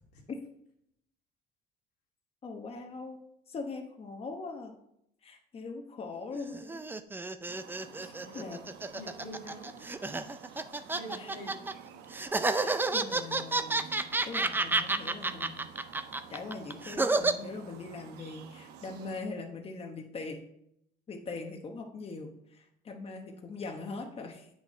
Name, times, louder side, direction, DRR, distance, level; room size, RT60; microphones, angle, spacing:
voice 1, 2.4-4.7 5.2-6.8 8.0-8.6 11.2-11.3 12.5-13.9 14.2-15.5 16.3-20.4 21.1-24.5, left 3 dB, 35° left, 2 dB, 1.0 m, -41 dB
sound 1, 6.3-11.7 12.1-17.3, right 3 dB, 10° right, 0.5 m, -30 dB
sound 2, 7.5-19.2, right 7 dB, 85° right, 0.9 m, -51 dB
voice 2, 8.2-8.5 8.9-9.9 10.9-11.6, equal, 90° left, -2 dB, 2.4 m, -46 dB
8.2 x 6.3 x 4.2 m, 0.76 s
cardioid pair, 110°, 17 cm